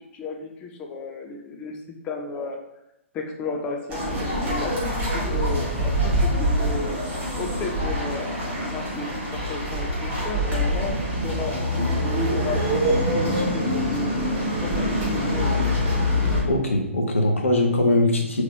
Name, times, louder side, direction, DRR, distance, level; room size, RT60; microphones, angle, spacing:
voice 1, 0.1-2.6 3.1-7.0 7.4-11.9 12.3-14.2 14.6-15.7, left 4 dB, 15° left, 2 dB, 0.4 m, -33 dB
sound 1, 3.9-16.4, equal, 20° right, 1.3 m, -24 dB
voice 2, 16.4-18.4, left 1 dB, 70° left, 1 dB, 0.8 m, -21 dB
3.7 x 3.0 x 3.6 m, 0.89 s
figure-of-eight pair, 125°, 7 cm